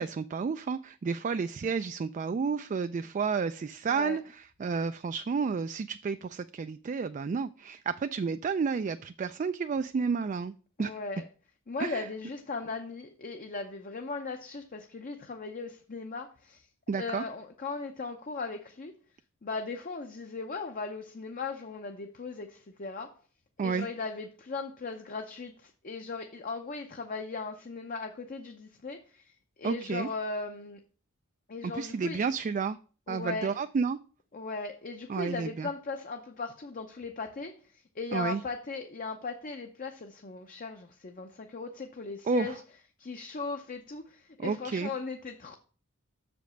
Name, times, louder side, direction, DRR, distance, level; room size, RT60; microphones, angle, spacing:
voice 1, 0.0-10.5 10.8-11.0 11.8-12.0 16.9-17.2 23.6-23.9 29.6-30.1 31.7-32.8 33.1-34.0 35.1-35.7 38.1-38.4 42.3-42.5 44.4-44.9, right 5 dB, 35° right, 11 dB, 0.3 m, -31 dB
voice 2, 3.9-4.2 10.8-11.2 11.7-16.6 16.9-18.9 19.4-23.1 23.6-29.3 29.6-30.8 31.5-32.2 33.1-33.6 34.3-42.6 43.0-45.6, left 4 dB, 40° left, 5 dB, 0.7 m, -38 dB
6.7 x 5.2 x 6.2 m, 0.39 s
head